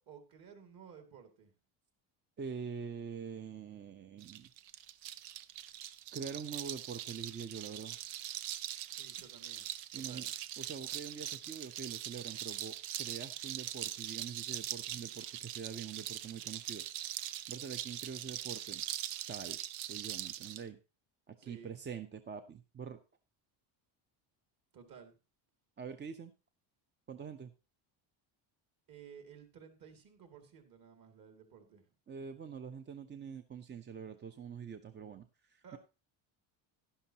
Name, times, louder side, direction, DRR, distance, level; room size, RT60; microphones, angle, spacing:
voice 1, 0.0-1.5 8.9-9.7 9.9-10.3 21.4-21.8 24.7-25.1 28.9-31.9 35.6-35.8, right 7 dB, 45° right, 6 dB, 2.4 m, -55 dB
voice 2, 2.4-4.5 6.1-8.0 9.9-10.3 10.6-16.8 17.5-18.8 19.3-19.6 19.9-20.8 21.3-23.0 25.8-26.3 27.1-27.5 32.1-35.8, right 6 dB, 25° right, 9 dB, 0.6 m, -45 dB
sound 1, 4.2-20.6, right 12 dB, 90° right, 0.8 m, -42 dB
11.5 x 11.0 x 2.9 m, 0.30 s
cardioid pair, 125°, 46 cm